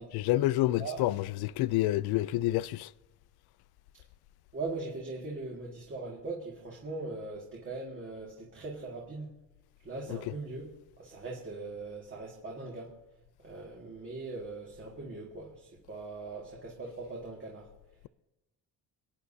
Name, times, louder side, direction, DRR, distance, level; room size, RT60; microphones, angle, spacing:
voice 1, 0.1-2.9, left 16 dB, 85° left, 0.5 m, -28 dB
voice 2, 0.7-1.1 4.5-9.3 9.8-10.7 11.0-12.9 13.4-17.7, right 3 dB, 30° right, 2.2 m, -40 dB
28.0 x 9.4 x 2.8 m
cardioid pair, 165°, 37 cm